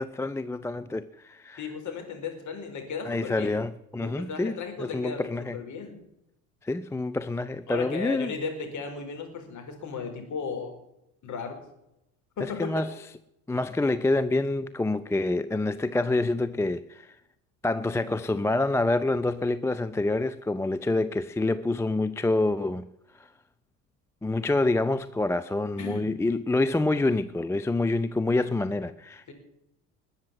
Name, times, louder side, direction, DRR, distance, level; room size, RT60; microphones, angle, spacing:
voice 1, 0.0-1.6 3.0-5.6 6.6-8.3 12.4-12.9 13.5-17.2 17.6-22.9 24.2-29.3, left 2 dB, 5° left, 0.5 m, -27 dB
voice 2, 1.6-3.6 4.0-5.9 7.7-10.7 11.2-11.6 12.4-12.8 25.8-26.1 29.3-29.4, left 5 dB, 40° left, 5.1 m, -35 dB
20.5 x 7.3 x 9.6 m
figure-of-eight pair, 65°, 43 cm